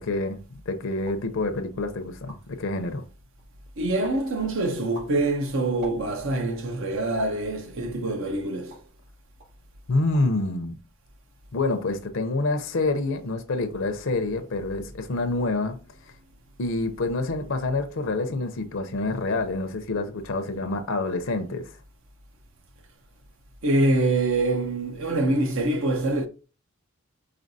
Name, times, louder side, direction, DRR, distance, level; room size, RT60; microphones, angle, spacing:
voice 1, 0.0-3.0 9.9-10.8 11.5-15.8 16.6-21.8, left 2 dB, 60° left, 0.6 m, -27 dB
sound 1, 1.1-1.3 1.8-1.9 2.1-2.6 3.1-3.6 4.0-4.3 4.7-6.4 7.2-7.5 8.1-9.0 9.4-9.6 9.9-10.4 10.7-11.2, right 2 dB, 85° right, 2.5 m, -46 dB
voice 2, 3.8-8.8 23.6-26.3, right 2 dB, 60° right, 0.7 m, -25 dB
5.0 x 3.9 x 2.7 m
head